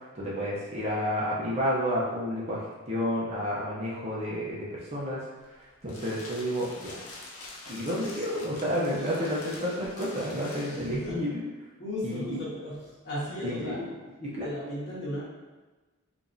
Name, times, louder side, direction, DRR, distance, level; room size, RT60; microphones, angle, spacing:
voice 1, 0.1-5.2 5.8-7.0 7.7-11.4 12.0-12.5 13.4-13.9 14.2-14.7, equal, 30° right, -6 dB, 0.7 m, -31 dB
sound 1, 5.4-11.1, left 2 dB, 75° left, 0.7 m, -45 dB
voice 2, 10.6-11.2 11.8-13.8 14.4-15.2, left 1 dB, 50° left, -8 dB, 1.5 m, -36 dB
4.9 x 2.6 x 2.7 m, 1.2 s
head